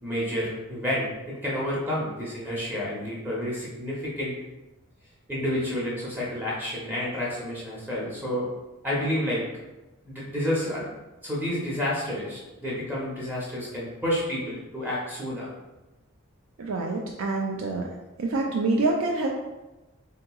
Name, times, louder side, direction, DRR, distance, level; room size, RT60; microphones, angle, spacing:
voice 1, 0.0-4.3 5.3-8.5 8.8-9.4 10.1-15.5, left 1 dB, 10° right, -6 dB, 0.6 m, -30 dB
voice 2, 16.6-17.9 18.2-19.3, right 3 dB, 70° right, 0 dB, 0.3 m, -26 dB
3.6 x 2.8 x 2.2 m, 1.1 s
head